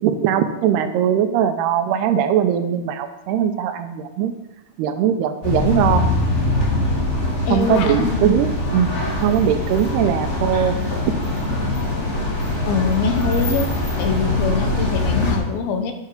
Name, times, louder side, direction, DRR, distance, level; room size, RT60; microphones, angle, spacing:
voice 1, 0.0-4.3 4.8-6.1 7.5-10.8, right 9 dB, 85° right, 9 dB, 2.8 m, -20 dB
sound 1, 5.4-15.4, left 2 dB, 20° left, 2.1 m, -22 dB
voice 2, 7.5-8.2 12.7-13.7 14.0-15.9, left 5 dB, 75° left, 6 dB, 2.7 m, -23 dB
9.6 x 7.8 x 6.5 m, 0.93 s
omnidirectional pair, 4.6 m